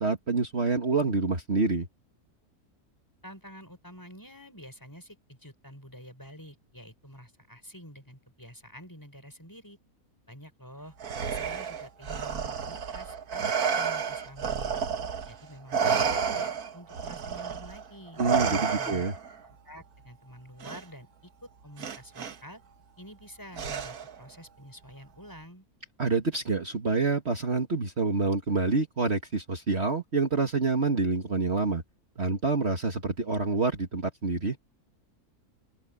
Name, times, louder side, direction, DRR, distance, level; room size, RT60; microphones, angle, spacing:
voice 1, 0.0-1.9 18.2-19.1 26.0-31.8 32.2-34.6, right 4 dB, 45° right, 2.1 m, -27 dB
voice 2, 3.2-9.8 10.3-10.9 11.2-13.4 13.7-14.7 15.3-18.2 18.7-19.0 19.4-22.6 23.0-25.7, equal, 10° left, 5.3 m, -48 dB
Respiratory sounds, 11.0-15.4 15.7-19.3 20.6-20.8 21.8-22.3 23.6-24.2, right 6 dB, 75° right, 1.8 m, -30 dB
open air
omnidirectional pair, 1.6 m